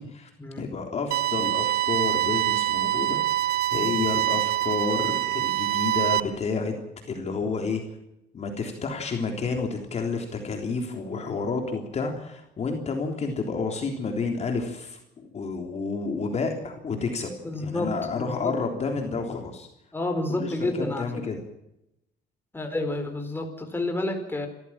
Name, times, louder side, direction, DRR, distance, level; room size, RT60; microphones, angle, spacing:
voice 1, 0.0-0.3 0.6-6.7 7.1-7.8 8.3-17.3 17.6-19.7 20.4-21.4, left 4 dB, 40° left, 3 dB, 3.5 m, -30 dB
sound 1, 1.1-6.2, right 14 dB, 70° right, 0.9 m, -25 dB
voice 2, 17.4-18.6 19.9-21.2 22.5-24.5, left 2 dB, 10° left, 5 dB, 4.5 m, -30 dB
26.0 x 14.5 x 7.4 m, 0.86 s
cardioid pair, 110°, 17 cm